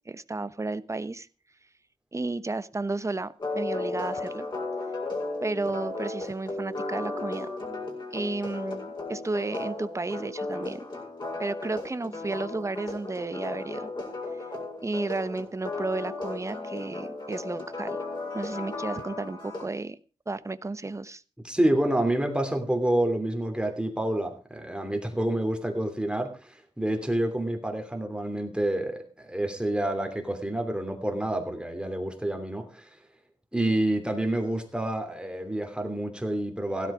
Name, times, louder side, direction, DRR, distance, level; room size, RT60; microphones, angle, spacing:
voice 1, 0.1-1.3 2.1-4.5 5.4-7.5 8.1-10.9 11.4-13.9 14.8-18.0 18.3-20.0 20.3-21.2, right 3 dB, 25° right, 13 dB, 1.0 m, -33 dB
sound 1, 3.4-19.7, left 2 dB, 40° left, 7.4 m, -35 dB
voice 2, 21.4-33.0 33.5-36.9, right 1 dB, 10° right, 4 dB, 3.0 m, -28 dB
16.5 x 12.5 x 5.0 m, 0.35 s
wide cardioid pair, 100°, 12 cm